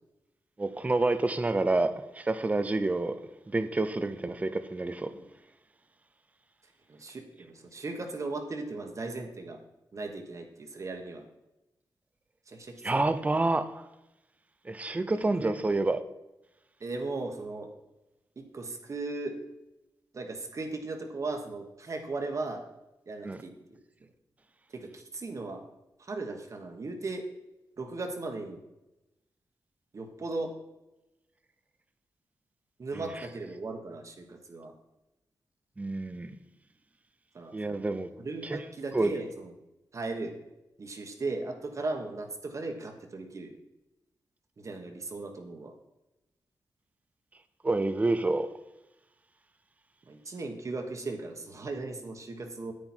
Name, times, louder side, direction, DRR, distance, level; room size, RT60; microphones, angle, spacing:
voice 1, 0.6-3.2 3.5-5.1 12.8-13.7 14.6-16.0 23.2-23.4 32.9-33.3 35.8-36.4 37.5-38.1 38.4-38.6 38.9-39.1 47.6-48.5, right 2 dB, 20° right, 0.6 m, -28 dB
voice 2, 6.9-9.6 9.9-11.2 12.5-13.0 15.1-15.6 16.8-17.7 18.4-19.4 20.1-22.6 23.1-23.8 24.7-25.6 26.0-27.2 27.8-28.6 29.9-30.5 32.8-34.7 37.3-37.8 38.2-39.5 39.9-40.3 40.8-43.5 44.6-45.7 50.1-52.7, right 3 dB, 45° right, 1.4 m, -37 dB
9.6 x 9.1 x 4.5 m
wide cardioid pair, 140°, 8 cm